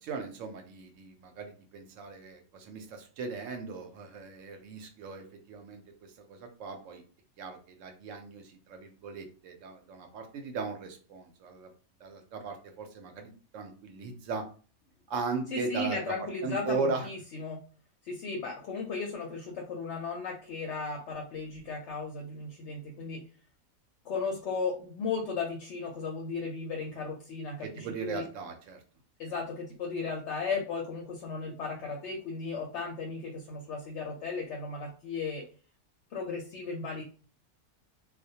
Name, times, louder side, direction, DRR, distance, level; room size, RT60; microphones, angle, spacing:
voice 1, 0.0-7.0 7.4-11.7 12.0-14.4 15.1-16.0 16.4-17.1 27.6-28.8, right 4 dB, 70° right, 5 dB, 0.8 m, -38 dB
voice 2, 15.5-17.6 18.0-23.2 24.0-28.2 29.2-35.5 36.1-37.0, left 4 dB, 65° left, 0 dB, 0.7 m, -35 dB
2.3 x 2.1 x 2.7 m, 0.38 s
omnidirectional pair, 1.5 m